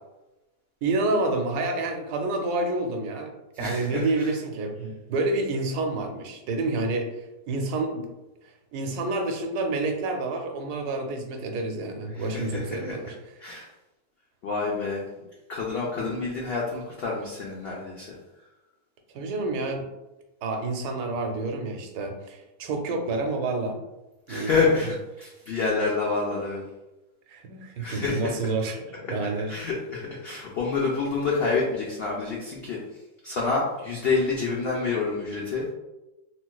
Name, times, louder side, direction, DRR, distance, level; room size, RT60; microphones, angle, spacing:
voice 1, 0.8-3.3 3.6-7.1 7.5-8.1 8.7-13.2 15.1-15.2 19.1-19.9 20.4-23.8 24.3-24.5 27.3-29.6, right 2 dB, 90° right, 4 dB, 1.1 m, -28 dB
voice 2, 3.6-4.0 12.2-12.9 13.4-13.7 14.4-15.0 15.5-18.2 24.3-26.6 27.8-28.3 29.5-32.8 33.2-35.7, left 4 dB, 85° left, -3 dB, 0.5 m, -28 dB
3.7 x 2.4 x 2.3 m, 1.0 s
omnidirectional pair, 1.6 m